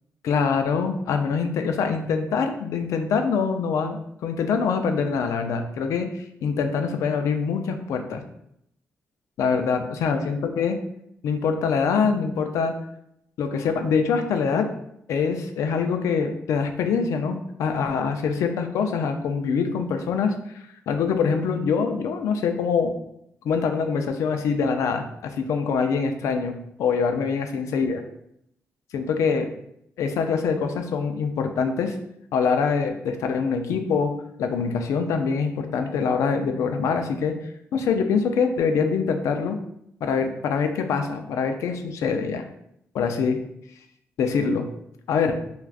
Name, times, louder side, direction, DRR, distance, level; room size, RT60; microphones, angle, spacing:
voice 1, 0.2-8.2 9.4-10.8 11.2-12.7 13.4-14.7 15.1-20.3 20.9-22.9 23.4-28.0 28.9-29.5 30.0-32.0 32.3-34.1 34.4-37.3 37.7-39.6 40.0-42.5 42.9-43.4 44.2-44.7 45.1-45.4, left 5 dB, 80° left, 6 dB, 0.3 m, -24 dB
3.3 x 2.3 x 2.4 m, 0.76 s
cardioid pair, 90°, 5 cm